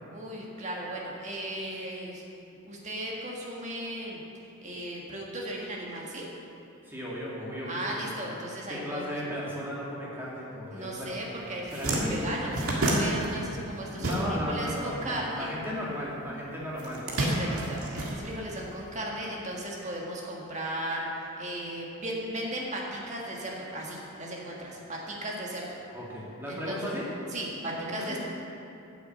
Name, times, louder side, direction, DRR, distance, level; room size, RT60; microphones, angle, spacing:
voice 1, 0.1-2.2 2.6-4.2 4.6-6.3 7.7-9.2 10.7-15.5 17.1-25.8 26.5-26.9 27.3-28.2, right 1 dB, 30° right, -3 dB, 1.6 m, -36 dB
voice 2, 6.8-8.0 8.7-11.2 11.7-12.3 14.0-17.0 17.3-17.6 25.9-27.1 27.6-28.2, equal, 10° right, -6 dB, 2.0 m, -35 dB
sound 1, 11.1-11.2 11.5-14.7 14.9-16.1 16.7-18.8, right 1 dB, 85° right, 2.0 m, -30 dB
9.4 x 7.1 x 7.6 m, 2.8 s
head